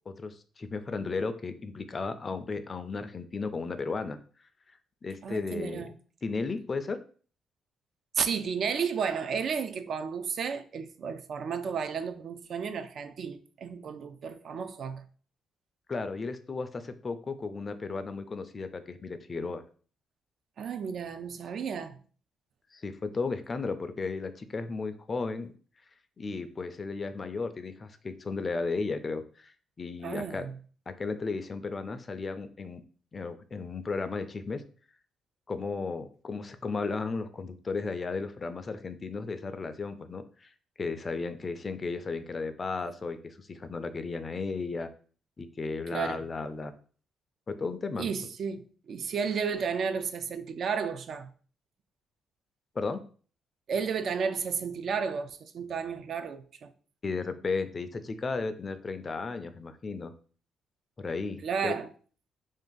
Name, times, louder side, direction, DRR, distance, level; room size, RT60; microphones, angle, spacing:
voice 1, 0.1-4.2 5.0-5.9 6.2-7.0 15.9-19.6 22.7-25.5 26.2-30.4 30.9-32.8 33.1-34.6 35.5-40.5 40.8-44.9 45.4-46.7 47.5-48.1 52.8-53.0 57.0-60.1 61.0-61.8, left 4 dB, 35° left, 0.4 m, -34 dB
voice 2, 5.2-5.9 8.1-15.1 20.6-22.0 30.0-30.6 45.9-46.3 48.0-51.3 53.7-56.7 61.4-61.9, right 6 dB, 60° right, 0.3 m, -33 dB
2.6 x 2.5 x 3.8 m
cardioid pair, 90°, 0 cm